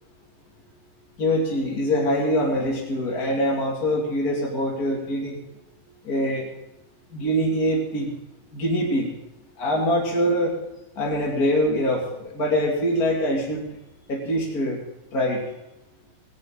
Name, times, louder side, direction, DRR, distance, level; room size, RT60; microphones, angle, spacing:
voice 1, 1.2-5.3 6.0-6.5 7.1-8.1 8.5-9.1 9.6-10.5 11.0-13.6 14.1-14.8 15.1-15.4, equal, 30° left, -3 dB, 2.1 m, -23 dB
18.5 x 17.0 x 3.8 m, 0.93 s
omnidirectional pair, 4.2 m